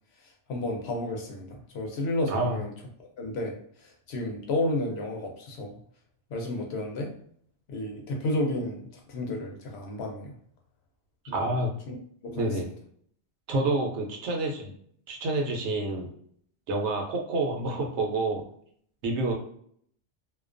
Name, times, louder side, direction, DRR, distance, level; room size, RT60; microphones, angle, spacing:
voice 1, 0.5-2.7 3.2-5.8 6.3-7.1 7.7-10.3 11.3-11.6 11.9-12.0 12.2-12.5, left 1 dB, 70° left, 1 dB, 0.8 m, -32 dB
voice 2, 2.3-2.6 11.3-11.7 12.3-12.7 13.5-14.7 15.1-16.1 16.7-18.4 19.0-19.3, right 2 dB, 70° right, 1 dB, 0.9 m, -28 dB
2.3 x 2.2 x 2.4 m, 0.64 s
omnidirectional pair, 1.2 m